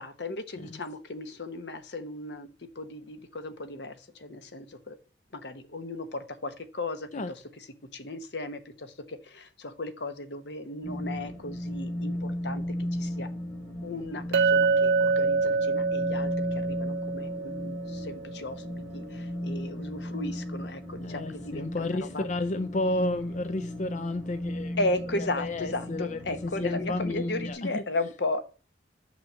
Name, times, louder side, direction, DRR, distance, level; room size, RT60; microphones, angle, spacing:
voice 1, 0.0-2.5 2.8-3.9 4.2-5.0 5.4-7.0 7.9-8.6 9.3-12.6 13.0-13.3 13.8-14.2 14.5-17.8 18.0-18.5 18.9-19.0 19.4-22.2 24.8-28.4, left 2 dB, 70° left, 1.1 m, -35 dB
sound 1, 10.8-27.5, left 1 dB, 10° left, 3.9 m, -36 dB
Chink clink, 14.3-18.6, right 4 dB, 75° right, 0.5 m, -26 dB
voice 2, 21.0-24.8 25.2-27.8, left 2 dB, 45° left, 0.5 m, -32 dB
6.2 x 5.9 x 6.2 m
head